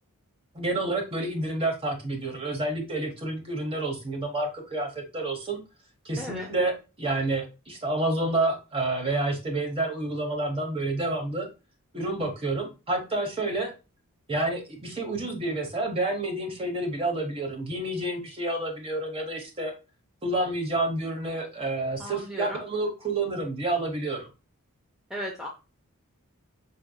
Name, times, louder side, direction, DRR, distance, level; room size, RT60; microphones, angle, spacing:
voice 1, 0.5-5.6 6.0-6.7 7.0-11.5 11.9-13.7 14.3-19.7 20.2-24.3, right 2 dB, 25° right, 3 dB, 1.1 m, -29 dB
voice 2, 6.2-6.5 22.0-22.6 25.1-25.5, equal, ahead, -2 dB, 0.7 m, -35 dB
5.8 x 3.4 x 2.3 m, 0.30 s
head